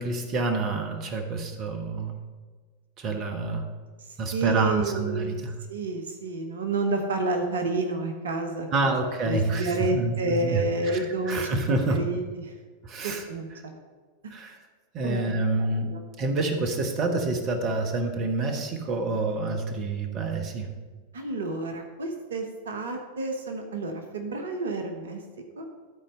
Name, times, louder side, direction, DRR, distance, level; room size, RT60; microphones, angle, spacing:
voice 1, 0.0-2.2 3.0-3.7 4.2-5.5 8.7-12.0 12.8-13.2 14.3-14.6 14.9-20.7, right 3 dB, 35° right, 5 dB, 1.0 m, -28 dB
voice 2, 4.1-8.9 9.2-11.4 11.7-12.5 13.0-13.8 15.0-16.0 21.1-25.2 25.6-25.7, right 2 dB, 65° right, 5 dB, 1.0 m, -30 dB
12.5 x 4.3 x 5.4 m, 1.5 s
figure-of-eight pair, 90°, 0 cm